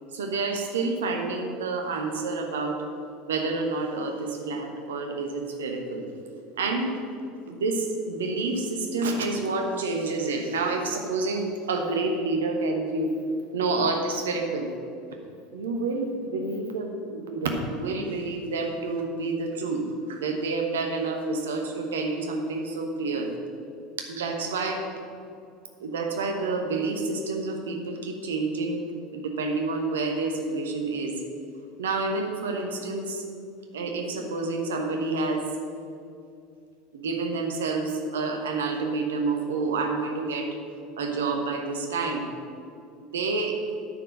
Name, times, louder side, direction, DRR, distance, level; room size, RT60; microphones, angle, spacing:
voice 1, 0.1-2.8 3.3-6.1 6.6-7.0 7.5-13.1 13.5-14.7 15.5-23.3 24.0-24.9 25.8-31.2 31.8-33.2 33.7-35.5 36.9-40.6 41.0-42.3 43.0-43.6, right 3 dB, 70° right, 3 dB, 1.1 m, -28 dB
9.6 x 4.6 x 7.7 m, 2.5 s
figure-of-eight pair, 75°, 0 cm